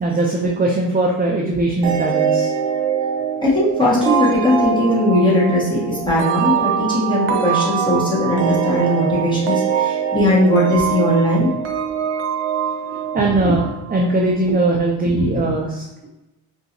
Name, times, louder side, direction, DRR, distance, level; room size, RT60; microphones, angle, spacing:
voice 1, 0.0-2.5 13.1-15.8, right 2 dB, 20° right, -1 dB, 0.3 m, -20 dB
sound 1, 1.8-14.2, right 7 dB, 90° right, 0.7 m, -23 dB
voice 2, 3.4-11.5 13.4-13.5 15.1-15.2, left 1 dB, 10° left, -7 dB, 1.4 m, -18 dB
4.5 x 2.9 x 2.6 m, 0.97 s
cardioid pair, 125°, 49 cm